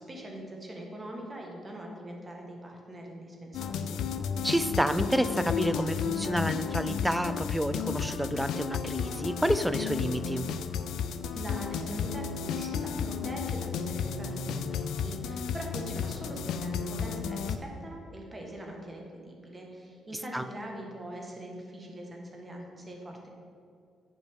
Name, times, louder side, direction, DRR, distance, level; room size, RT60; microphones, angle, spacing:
voice 1, 0.0-4.0 11.3-23.3, right 1 dB, 25° right, 0 dB, 1.6 m, -42 dB
sound 1, 3.5-17.6, left 7 dB, 80° left, 0.4 m, -33 dB
voice 2, 4.4-10.5 20.3-20.4, equal, 5° right, 12 dB, 0.4 m, -29 dB
11.0 x 5.3 x 3.7 m, 2.3 s
cardioid pair, 90°, 0 cm